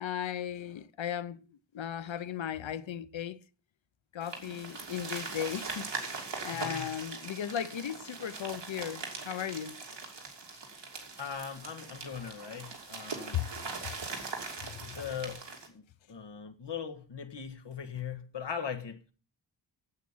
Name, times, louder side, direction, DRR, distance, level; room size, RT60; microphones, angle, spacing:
voice 1, 0.0-1.4 1.7-3.4 4.1-5.9 6.4-9.8 13.3-13.5 13.8-13.9 14.6-14.9, left 9 dB, 90° left, 0.8 m, -36 dB
sound 1, 4.2-15.7, right 4 dB, 70° right, 2.9 m, -41 dB
voice 2, 6.5-6.9 11.2-13.4 14.8-19.1, left 7 dB, 65° left, 1.7 m, -40 dB
9.0 x 8.4 x 7.2 m
wide cardioid pair, 105°, 45 cm